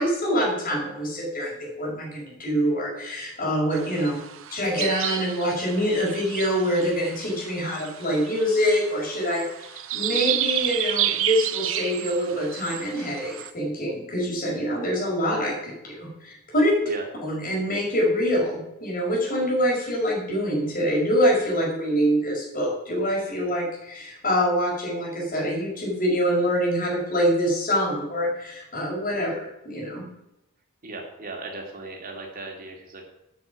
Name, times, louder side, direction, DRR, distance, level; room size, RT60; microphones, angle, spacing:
voice 1, 0.0-4.2 4.5-16.7 17.2-30.0, equal, 40° left, -3 dB, 5.9 m, -25 dB
sound 1, 3.7-13.5, right 11 dB, 65° right, 0.9 m, -31 dB
voice 2, 30.8-33.1, right 2 dB, 40° right, 0 dB, 3.0 m, -37 dB
9.4 x 7.8 x 9.4 m, 0.87 s
head